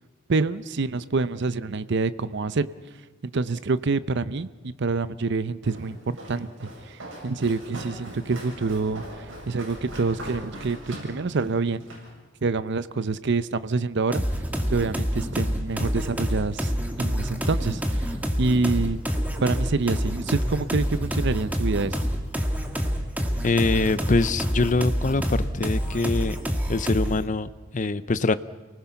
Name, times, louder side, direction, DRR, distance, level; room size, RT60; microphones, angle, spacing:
voice 1, 0.3-2.7 3.2-6.5 6.9-11.8 12.4-14.2 14.7-16.7 17.0-19.0 19.4-22.0, right 3 dB, 60° right, 14 dB, 0.7 m, -26 dB
Walk footsteps, 5.6-12.1, right 1 dB, 75° right, 7.3 m, -40 dB
sound 1, 14.1-27.3, equal, 10° right, 1.7 m, -27 dB
voice 2, 23.4-26.4 26.7-28.4, left 3 dB, 40° left, 15 dB, 0.6 m, -24 dB
29.0 x 19.5 x 5.8 m, 1.3 s
head